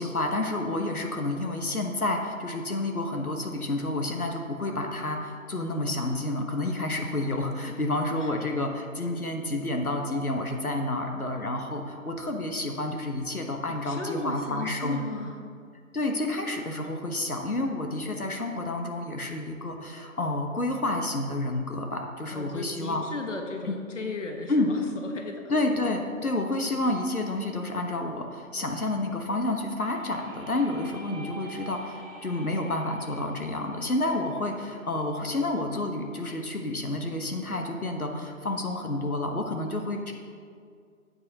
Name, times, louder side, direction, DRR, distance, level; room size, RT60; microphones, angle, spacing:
voice 1, 0.0-15.0 15.9-23.0 23.7-23.8 24.5-24.8 25.5-40.1, left 2 dB, 80° left, 3 dB, 1.3 m, -29 dB
voice 2, 13.8-15.4 22.3-25.5, left 3 dB, 55° left, 3 dB, 1.3 m, -36 dB
sound 1, 29.7-35.5, right 2 dB, 10° right, 2.2 m, -47 dB
13.0 x 8.6 x 2.9 m, 2.1 s
figure-of-eight pair, 145°, 43 cm